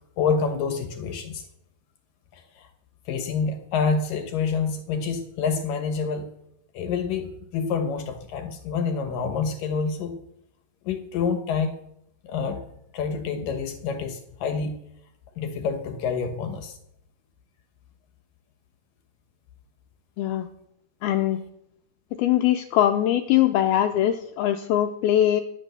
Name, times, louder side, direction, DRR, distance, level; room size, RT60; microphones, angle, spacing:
voice 1, 0.2-1.4 2.3-2.7 3.1-6.3 6.7-10.1 10.8-11.7 12.2-12.6 12.9-14.8 15.4-16.8, left 5 dB, 65° left, 7 dB, 2.3 m, -27 dB
voice 2, 21.0-21.4 22.2-25.4, left 12 dB, 85° left, 7 dB, 2.2 m, -22 dB
18.0 x 11.5 x 6.9 m, 0.80 s
omnidirectional pair, 5.3 m